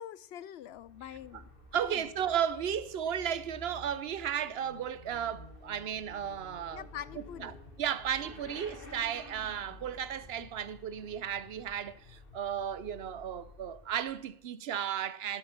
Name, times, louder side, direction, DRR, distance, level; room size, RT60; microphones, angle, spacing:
voice 1, 0.0-2.1 6.7-7.6, left 10 dB, 85° left, 0.8 m, -45 dB
Motorcycle / Accelerating revving vroom, 0.6-14.4, left 1 dB, 60° left, 2.4 m, -52 dB
voice 2, 1.7-6.8 7.4-7.5 7.8-15.4, right 9 dB, 80° right, 0.9 m, -34 dB
11.5 x 7.3 x 6.5 m
omnidirectional pair, 1.0 m